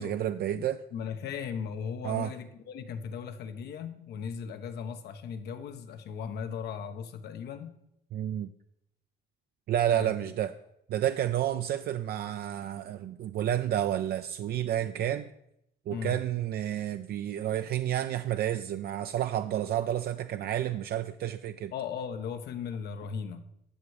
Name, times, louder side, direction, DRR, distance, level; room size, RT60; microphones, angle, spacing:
voice 1, 0.0-0.8 2.0-2.3 8.1-8.5 9.7-10.5 10.9-15.3 15.9-21.7, right 11 dB, 70° right, 9 dB, 0.4 m, -30 dB
voice 2, 0.5-7.7 9.9-10.3 15.9-16.2 21.7-23.4, left 6 dB, 85° left, 8 dB, 1.1 m, -37 dB
12.5 x 7.3 x 4.9 m, 0.79 s
cardioid pair, 135°, 17 cm